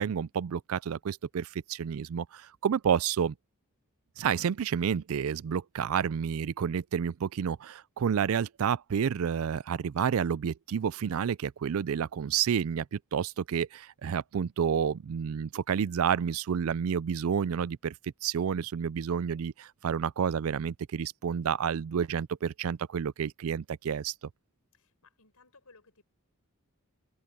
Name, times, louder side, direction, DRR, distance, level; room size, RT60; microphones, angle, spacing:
voice 1, 0.0-3.3 4.2-17.9 18.2-24.1, right 7 dB, 65° right, 0.4 m, -30 dB
voice 2, 24.7-26.0, left 3 dB, 80° left, 5.3 m, -60 dB
open air
head